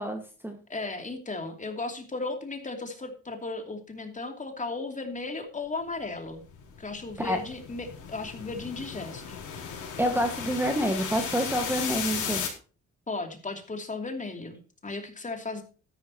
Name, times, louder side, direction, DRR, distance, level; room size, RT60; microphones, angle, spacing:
voice 1, 0.0-0.6 7.2-7.4 10.0-12.4, equal, 5° right, 5 dB, 1.7 m, -28 dB
voice 2, 0.7-6.4 6.8-9.4 13.1-15.6, left 3 dB, 25° left, 4 dB, 2.8 m, -35 dB
sound 1, 6.5-12.5, left 7 dB, 80° left, 4.4 m, -35 dB
13.0 x 11.0 x 2.9 m, 0.37 s
cardioid pair, 90°, 30 cm